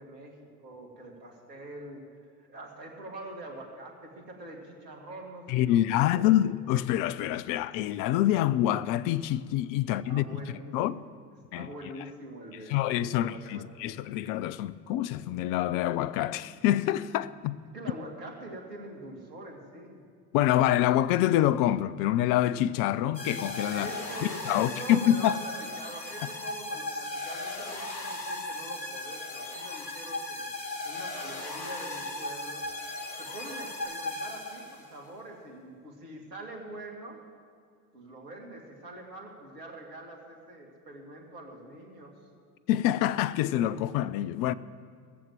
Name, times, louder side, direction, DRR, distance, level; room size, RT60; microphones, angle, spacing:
voice 1, 0.0-2.0 2.4-6.2 10.1-11.0 11.5-13.9 17.7-20.0 23.7-30.5 30.8-32.7 33.2-37.2 37.9-42.2, right 1 dB, 80° right, 2.5 m, -44 dB
voice 2, 5.5-11.0 11.5-11.7 12.7-17.6 20.3-23.9 24.4-25.4 42.7-44.5, left 13 dB, 45° left, 0.6 m, -26 dB
sound 1, 23.1-35.0, left 2 dB, 85° left, 1.5 m, -37 dB
17.5 x 7.4 x 7.5 m
hypercardioid pair, 75°, 49 cm